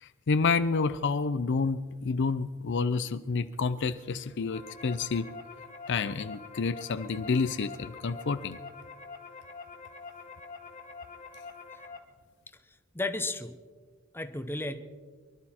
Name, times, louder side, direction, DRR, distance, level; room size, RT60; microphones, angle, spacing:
voice 1, 0.0-5.3 5.9-8.6, left 4 dB, 60° left, 12 dB, 0.5 m, -29 dB
sound 1, 4.1-12.0, left 4 dB, 35° left, 1.7 m, -46 dB
voice 2, 12.7-13.6 14.1-14.8, left 2 dB, 10° left, 9 dB, 0.9 m, -34 dB
24.0 x 12.0 x 4.3 m, 1.5 s
head